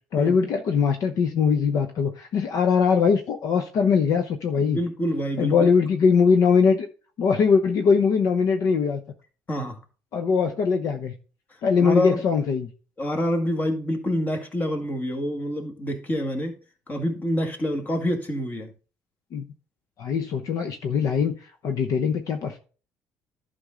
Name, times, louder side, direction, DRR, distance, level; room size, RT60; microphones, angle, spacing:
voice 1, 0.1-4.8 5.4-6.9 7.2-9.0 10.1-11.1 11.6-12.7 19.3-19.4 20.0-22.6, left 6 dB, 60° left, 0.9 m, -21 dB
voice 2, 4.6-5.7 9.5-9.8 11.8-12.2 13.0-16.5 16.9-18.7, equal, 25° left, 1.9 m, -27 dB
11.5 x 5.4 x 3.8 m
cardioid pair, 110°, 7 cm